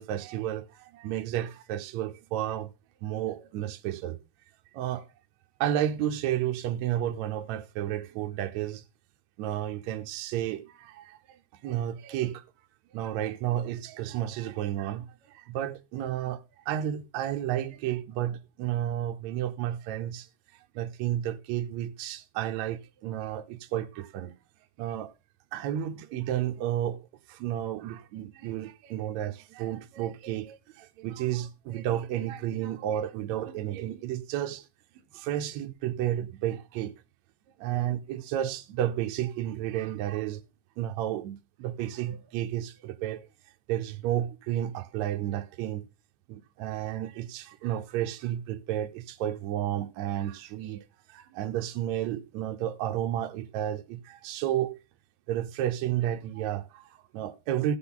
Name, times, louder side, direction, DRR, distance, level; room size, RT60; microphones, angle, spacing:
voice 1, 0.0-2.7 3.0-4.2 4.7-5.1 5.6-8.8 9.4-12.4 12.9-20.3 20.8-24.3 24.8-25.1 25.5-27.0 27.3-34.7 35.1-36.9 37.6-40.4 40.8-43.3 43.7-45.8 46.3-54.7 55.3-57.8, right 11 dB, 75° right, 1.9 m, -32 dB
16.0 x 5.9 x 3.9 m
omnidirectional pair, 3.5 m